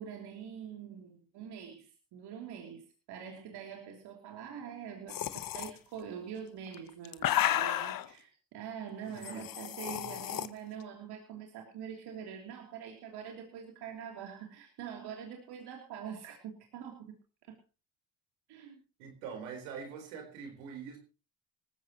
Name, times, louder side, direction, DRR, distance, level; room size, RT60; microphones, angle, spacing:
voice 1, 0.0-17.2 17.5-17.6 18.5-18.7, right 8 dB, 75° right, 1 dB, 3.3 m, -44 dB
sound 1, 5.1-5.7 6.7-8.1 9.2-10.5, left 12 dB, 55° left, 1.1 m, -32 dB
voice 2, 9.1-9.5 19.0-21.0, right 6 dB, 90° right, 4 dB, 4.2 m, -44 dB
19.5 x 14.5 x 3.0 m, 0.34 s
supercardioid pair, 65°, 40 cm